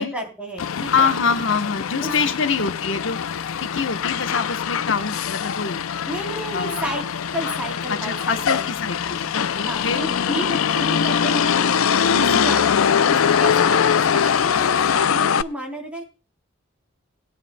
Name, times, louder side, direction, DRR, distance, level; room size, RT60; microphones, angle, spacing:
voice 1, 0.0-1.1 2.0-2.1 6.1-7.0 7.3-8.7 9.6-11.7 12.1-16.0, right 1 dB, 5° right, 0 dB, 3.3 m, -32 dB
Motor vehicle (road), 0.6-15.4, left 7 dB, 85° left, 0.5 m, -22 dB
voice 2, 0.9-5.8 6.5-6.8 7.9-10.1 12.1-13.0, left 5 dB, 65° left, 8 dB, 1.0 m, -25 dB
19.5 x 9.8 x 2.2 m, 0.32 s
head